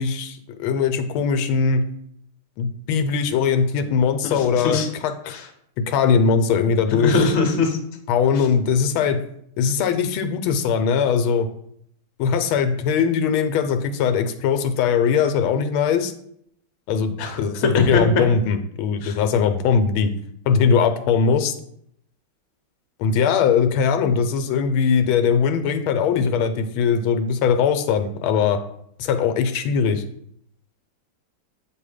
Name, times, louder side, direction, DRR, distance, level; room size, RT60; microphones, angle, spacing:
voice 1, 0.0-1.8 2.6-5.1 5.8-7.3 8.1-9.2 9.6-11.5 12.2-16.1 16.9-20.1 20.5-21.5 23.0-28.6 29.0-30.0, left 6 dB, 85° left, 9 dB, 1.4 m, -20 dB
voice 2, 4.2-4.9 5.3-5.5 6.9-7.8 17.2-17.4 17.7-18.0 19.0-19.1, left 3 dB, 55° left, 3 dB, 1.0 m, -22 dB
7.4 x 2.7 x 4.9 m, 0.70 s
omnidirectional pair, 2.2 m